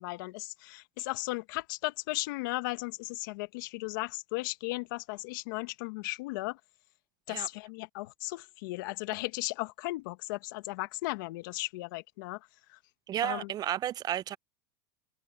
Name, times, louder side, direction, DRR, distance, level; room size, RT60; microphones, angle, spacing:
voice 1, 0.0-6.6 7.3-12.4 12.7-12.8 13.2-13.5, left 21 dB, 70° left, 1.5 m, -36 dB
voice 2, 13.1-14.4, right 11 dB, 35° right, 0.6 m, -32 dB
supercardioid pair, 110°, 11 cm